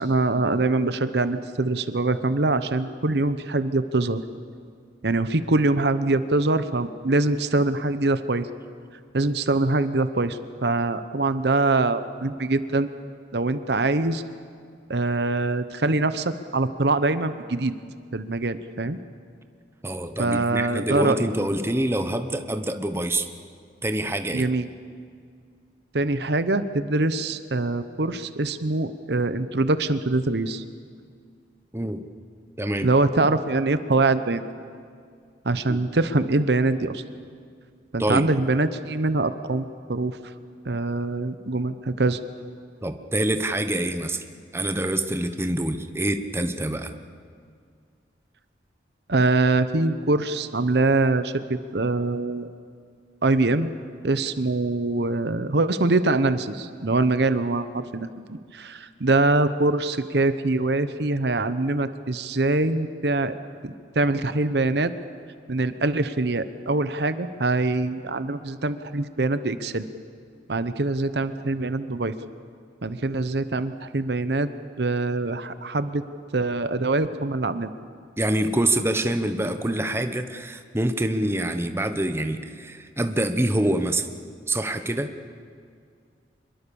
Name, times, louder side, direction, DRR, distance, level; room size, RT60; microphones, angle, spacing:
voice 1, 0.0-4.2 5.0-8.5 9.1-12.9 13.3-14.2 14.9-17.7 18.1-19.0 20.2-21.2 24.3-24.7 25.9-30.6 32.8-34.5 35.4-37.0 37.9-40.3 40.6-42.2 49.1-52.5 53.2-53.7 54.0-63.3 63.6-64.9 65.5-69.9 70.5-72.1 72.8-74.5 74.8-76.0 76.3-77.7, right 2 dB, 65° right, 12 dB, 0.9 m, -24 dB
voice 2, 19.8-23.3 23.8-24.5 31.7-32.1 32.6-32.9 35.7-35.8 38.0-38.2 42.8-44.2 44.5-47.0 78.2-84.1 84.5-85.1, right 1 dB, 15° right, 8 dB, 1.0 m, -26 dB
25.0 x 22.5 x 7.0 m, 2.2 s
head